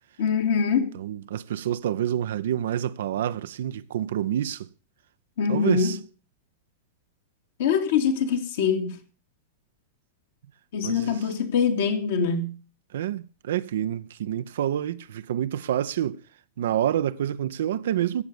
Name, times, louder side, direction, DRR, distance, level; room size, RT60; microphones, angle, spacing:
voice 1, 0.2-0.9 5.4-6.0 7.6-9.0 10.7-12.6, left 6 dB, 60° left, 2.5 m, -24 dB
voice 2, 0.9-4.7 5.5-6.0 10.8-11.1 12.9-16.2 16.6-18.2, right 11 dB, 60° right, 0.7 m, -28 dB
16.5 x 7.1 x 6.8 m
figure-of-eight pair, 95°, 0 cm